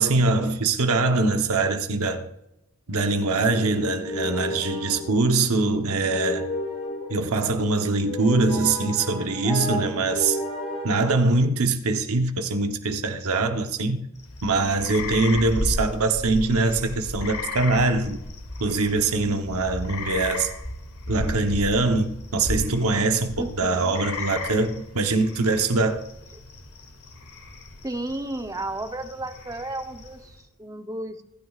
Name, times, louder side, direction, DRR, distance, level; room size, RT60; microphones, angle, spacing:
voice 1, 0.0-2.2 2.9-6.5 7.1-10.4 10.8-14.0 14.4-18.2 18.6-20.5 21.1-26.0, right 3 dB, 75° right, 1.0 m, -23 dB
sound 1, 2.9-10.9, left 1 dB, 45° left, 5.3 m, -33 dB
sound 2, 14.2-30.4, left 2 dB, 85° left, 2.4 m, -35 dB
voice 2, 23.4-24.0 27.8-31.2, right 2 dB, 15° right, 0.8 m, -33 dB
25.5 x 9.6 x 2.4 m
head